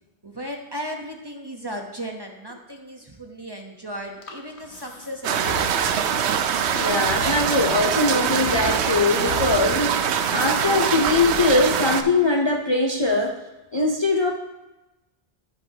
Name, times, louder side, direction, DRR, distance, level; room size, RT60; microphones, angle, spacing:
voice 1, 0.2-5.8, equal, 25° right, 2 dB, 0.9 m, -35 dB
Breathing, 4.0-6.3 7.1-8.0 8.4-10.2, left 3 dB, 85° left, 1.4 m, -37 dB
sound 1, 5.2-12.0, right 8 dB, 85° right, 0.9 m, -23 dB
voice 2, 6.7-13.4 13.7-14.3, left 2 dB, 30° left, 1 dB, 0.6 m, -21 dB
14.5 x 7.0 x 2.8 m, 1.0 s
omnidirectional pair, 1.1 m